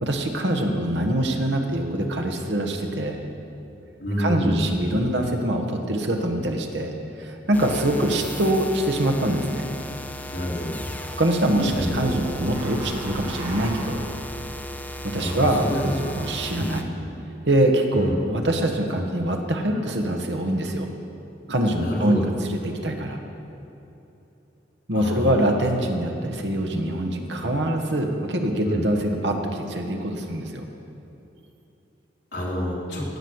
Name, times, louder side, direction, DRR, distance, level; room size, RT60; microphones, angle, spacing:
voice 1, 0.0-3.2 4.2-6.9 7.2-9.7 11.2-14.0 15.0-16.9 17.4-20.9 21.5-23.2 24.9-30.7, right 1 dB, 75° right, 4 dB, 1.3 m, -24 dB
voice 2, 4.0-4.8 10.3-10.8 11.5-11.9 15.2-15.9 16.2-16.3 16.5-16.7 17.9-18.2 21.8-22.2 24.9-25.3 28.6-28.8 32.3-33.0, equal, 70° left, -6 dB, 3.7 m, -27 dB
sound 1, 7.5-16.8, left 1 dB, 10° left, 0.6 m, -36 dB
sound 2, 11.5-15.8, right 1 dB, 30° right, 1.9 m, -37 dB
16.0 x 6.2 x 8.0 m, 2.9 s
head